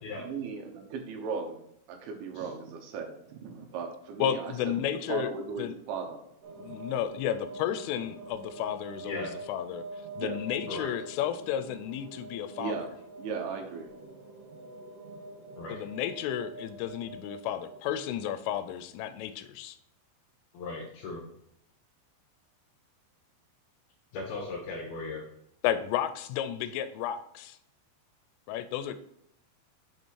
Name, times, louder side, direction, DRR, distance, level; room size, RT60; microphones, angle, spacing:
voice 1, 0.2-1.6 1.9-4.5 5.1-6.2 10.2-10.4 12.6-12.9 13.2-13.9, right 5 dB, 75° right, 2 dB, 3.3 m, -37 dB
voice 2, 4.2-5.3 5.6-5.7 6.6-9.8 10.2-12.7 15.7-19.8 25.6-27.6 28.5-29.0, left 10 dB, 85° left, 12 dB, 3.0 m, -32 dB
sound 1, 6.4-18.9, right 2 dB, 55° right, 3.1 m, -45 dB
voice 3, 20.5-21.2 24.1-25.2, left 3 dB, 70° left, 0 dB, 2.6 m, -37 dB
7.2 x 5.5 x 4.6 m, 0.76 s
omnidirectional pair, 5.6 m